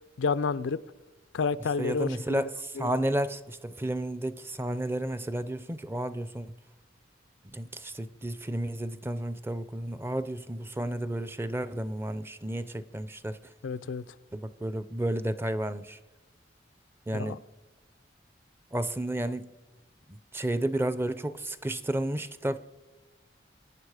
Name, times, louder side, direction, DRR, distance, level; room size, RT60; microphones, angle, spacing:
voice 1, 0.2-0.8 1.3-2.4 2.8-2.9 13.6-14.1 17.1-17.4, left 5 dB, 90° left, 14 dB, 0.4 m, -29 dB
voice 2, 1.6-6.6 7.5-13.4 14.3-16.0 17.1-17.4 18.7-19.5 20.1-22.6, right 1 dB, 15° right, 14 dB, 0.5 m, -32 dB
23.5 x 9.4 x 4.9 m, 1.2 s
head